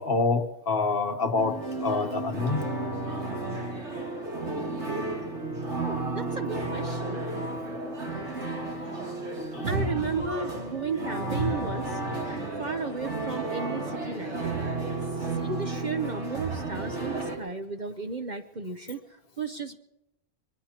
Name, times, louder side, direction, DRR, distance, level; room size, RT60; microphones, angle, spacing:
voice 1, 0.0-2.6 9.4-9.7, left 4 dB, 50° left, 1.1 m, -27 dB
sound 1, 1.4-17.4, right 2 dB, 60° right, 3.1 m, -32 dB
voice 2, 5.8-7.2 9.7-12.0 12.6-14.4 15.2-19.0 19.4-19.8, right 4 dB, 40° right, 0.8 m, -34 dB
24.0 x 21.0 x 2.9 m
omnidirectional pair, 1.3 m